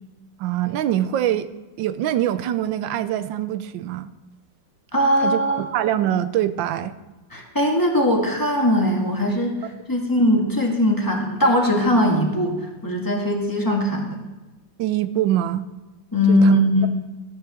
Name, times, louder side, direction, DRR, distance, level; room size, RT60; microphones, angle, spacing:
voice 1, 0.4-1.5 1.8-4.1 5.2-6.9 14.8-15.7 16.3-16.9, right 12 dB, 85° right, 13 dB, 1.4 m, -24 dB
voice 2, 4.9-5.7 7.3-12.5 12.8-14.2 16.1-16.9, equal, 10° left, 0 dB, 1.6 m, -20 dB
13.0 x 5.7 x 6.9 m, 1.1 s
omnidirectional pair, 2.0 m